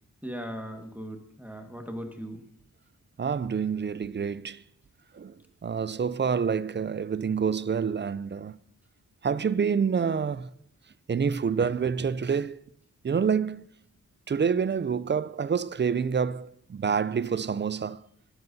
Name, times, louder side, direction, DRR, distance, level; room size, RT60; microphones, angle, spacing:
voice 1, 0.2-2.4, equal, 5° right, 1.6 m, -38 dB
voice 2, 3.2-4.6 5.2-5.3 5.6-8.6 9.2-10.5 11.1-12.6 13.0-13.7 14.3-18.0, right 6 dB, 35° right, 0.4 m, -27 dB
18.5 x 8.0 x 2.7 m
cardioid pair, 45°, 35 cm